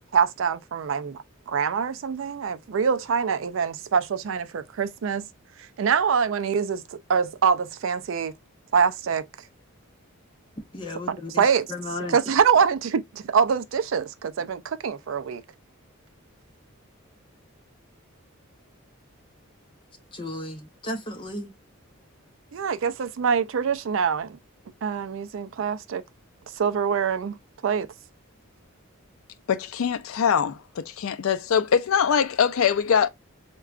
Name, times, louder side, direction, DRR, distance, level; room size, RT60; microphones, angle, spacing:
voice 1, 0.1-1.2 1.5-5.3 5.8-8.3 8.7-9.3 11.1-11.7 12.1-15.4 22.5-24.4 24.8-26.0 26.6-27.4 27.6-27.9, right 6 dB, 65° right, 0.4 m, -24 dB
voice 2, 10.7-12.2 20.1-21.5, left 2 dB, 25° left, 0.7 m, -34 dB
voice 3, 29.5-33.1, left 7 dB, 75° left, 0.4 m, -23 dB
4.6 x 2.3 x 2.4 m
head